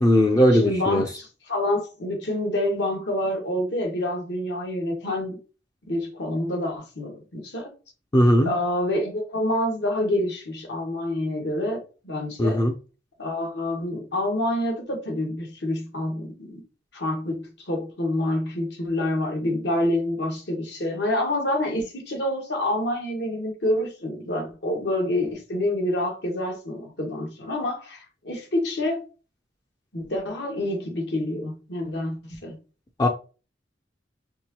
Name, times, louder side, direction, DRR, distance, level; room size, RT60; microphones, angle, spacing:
voice 1, 0.0-1.1 8.1-8.5 12.4-12.7 33.0-33.1, equal, 20° left, 0.5 m, -18 dB
voice 2, 0.5-5.4 5.9-7.7 8.4-11.8 12.0-12.6 13.2-16.6 16.9-29.1 29.9-32.6, left 1 dB, 70° left, 1.5 m, -27 dB
4.6 x 3.7 x 2.9 m
head